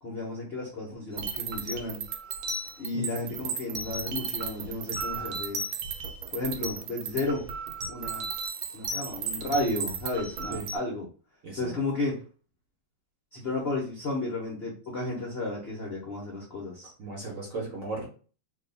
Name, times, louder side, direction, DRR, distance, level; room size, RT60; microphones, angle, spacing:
voice 1, 0.0-2.0 2.8-5.6 6.3-7.5 7.9-8.3 8.7-11.1 11.6-12.2 13.3-16.9, left 2 dB, 60° left, -2 dB, 0.6 m, -33 dB
sound 1, 1.2-10.8, right 4 dB, 75° right, 1.4 m, -34 dB
voice 2, 11.4-11.7 17.0-18.1, right 3 dB, 50° right, -2 dB, 1.2 m, -36 dB
2.9 x 2.7 x 3.9 m, 0.38 s
omnidirectional pair, 2.3 m